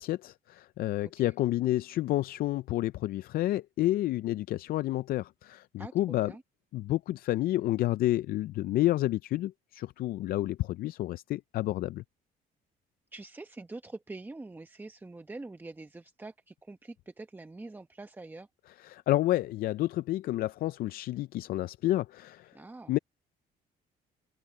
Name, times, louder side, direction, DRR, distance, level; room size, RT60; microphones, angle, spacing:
voice 1, 0.0-6.3 6.7-12.0 18.8-22.6 22.9-23.0, left 15 dB, 60° left, 0.4 m, -30 dB
voice 2, 1.0-1.3 5.8-6.4 13.1-18.5 22.5-22.9, right 2 dB, 10° right, 0.9 m, -45 dB
cardioid pair, 110°, 17 cm